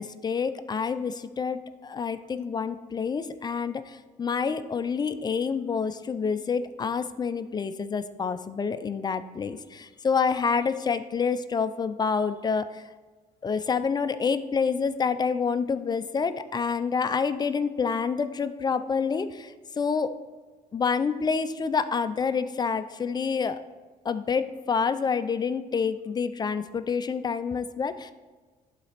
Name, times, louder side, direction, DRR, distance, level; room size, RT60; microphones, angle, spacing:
voice 1, 0.0-12.8 13.4-20.1 20.7-23.6 24.0-28.1, left 5 dB, 25° left, 11 dB, 0.4 m, -28 dB
11.5 x 4.1 x 3.3 m, 1.3 s
cardioid pair, 110°, 17 cm